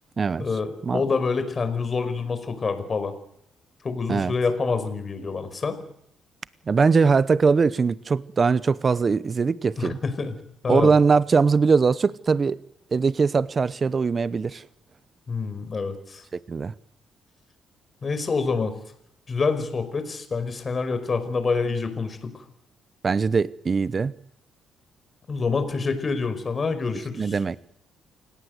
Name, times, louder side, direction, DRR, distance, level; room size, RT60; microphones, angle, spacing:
voice 1, 0.4-3.1 3.8-5.8 9.8-10.3 10.6-11.0 15.3-16.2 18.0-18.7 19.3-22.3 25.3-27.4, left 4 dB, 35° left, 5.2 m, -27 dB
voice 2, 6.7-10.0 10.7-12.6 12.9-14.6 16.5-16.7 23.0-24.1 27.2-27.6, right 5 dB, 35° right, 0.9 m, -21 dB
29.0 x 18.0 x 8.0 m
cardioid pair, 90°, 0 cm